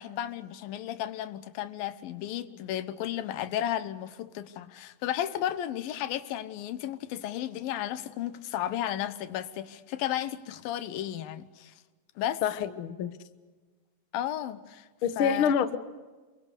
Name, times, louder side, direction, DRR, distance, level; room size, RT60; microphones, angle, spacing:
voice 1, 0.0-11.7 12.2-12.4 14.1-14.9 15.2-15.5, left 12 dB, 90° left, 2.8 m, -33 dB
voice 2, 12.4-13.2 15.0-15.8, left 7 dB, 65° left, 1.3 m, -26 dB
28.0 x 25.5 x 6.7 m
omnidirectional pair, 4.0 m